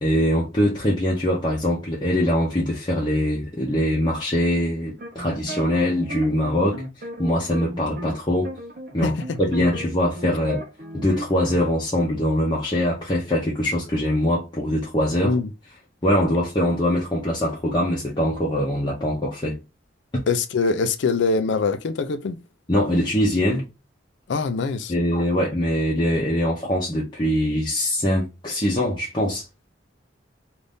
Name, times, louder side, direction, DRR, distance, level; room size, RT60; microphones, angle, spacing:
voice 1, 0.0-8.5 8.9-10.6 10.9-15.4 16.0-19.6 20.1-20.2 22.7-23.7 24.9-29.4, equal, 25° left, 0.6 m, -23 dB
sound 1, 4.9-8.2 8.4-11.7, right 1 dB, 45° right, 0.7 m, -36 dB
voice 2, 20.3-22.4 24.3-24.9, left 4 dB, 70° left, 0.4 m, -23 dB
2.6 x 2.5 x 3.4 m
head